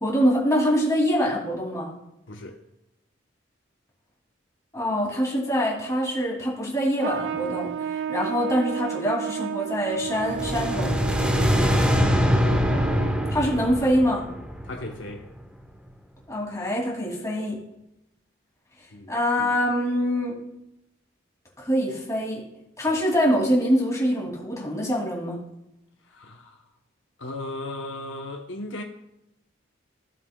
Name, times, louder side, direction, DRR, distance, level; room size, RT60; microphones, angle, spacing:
voice 1, 0.0-1.9 4.7-11.0 13.3-14.3 16.3-17.6 19.1-20.4 21.6-22.4 22.8-25.4, equal, 15° left, 2.4 m, -24 dB
voice 2, 2.3-2.6 11.6-11.8 14.6-15.3 18.9-19.1 26.1-26.6 27.2-28.8, left 2 dB, 70° left, 0.8 m, -36 dB
Trumpet, 7.0-13.5, right 8 dB, 60° right, 0.3 m, -32 dB
sound 1, 10.1-15.3, equal, 5° right, 0.6 m, -23 dB
16.0 x 7.3 x 2.2 m
head